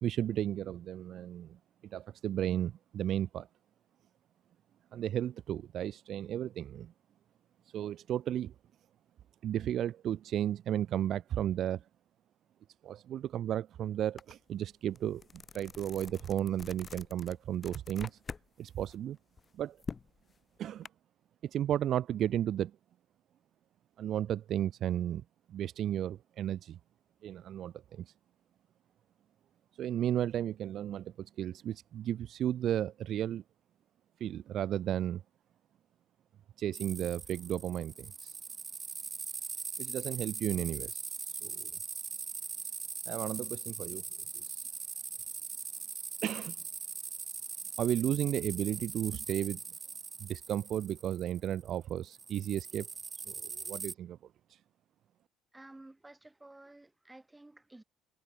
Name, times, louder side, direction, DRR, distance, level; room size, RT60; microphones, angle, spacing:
voice 1, 0.0-3.5 4.9-6.9 7.7-8.5 9.4-11.9 12.8-18.2 18.6-19.2 19.5-19.8 20.6-20.9 21.4-22.7 24.0-25.2 25.5-26.8 27.2-28.1 29.8-33.4 34.2-35.2 36.6-38.4 39.8-41.0 41.4-41.7 43.1-44.0 44.4-44.6 46.2-46.6 47.8-49.6 50.2-52.9 53.3-54.2 54.5-54.6, right 11 dB, 50° right, 0.4 m, -34 dB
sound 1, 14.2-14.3 14.7-18.5 18.8-20.9, left 5 dB, 30° left, 0.8 m, -46 dB
sound 2, 36.7-51.7 52.1-53.9, right 5 dB, 30° right, 1.3 m, -41 dB
voice 2, 55.5-57.8, right 2 dB, 10° right, 7.0 m, -53 dB
figure-of-eight pair, 50°, 0 cm